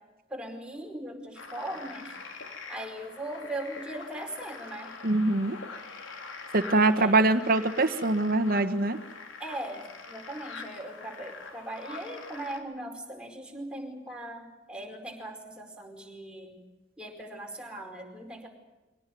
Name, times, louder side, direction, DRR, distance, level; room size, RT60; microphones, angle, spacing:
voice 1, 0.3-2.1 2.7-4.9 7.0-7.1 9.4-16.6 17.0-18.5, right 1 dB, 5° right, 1 dB, 4.8 m, -39 dB
sound 1, 1.3-12.6, left 4 dB, 90° left, 3.6 m, -44 dB
voice 2, 5.0-5.6 6.5-9.0, right 2 dB, 50° right, 9 dB, 1.5 m, -23 dB
24.0 x 18.0 x 9.4 m, 1.1 s
head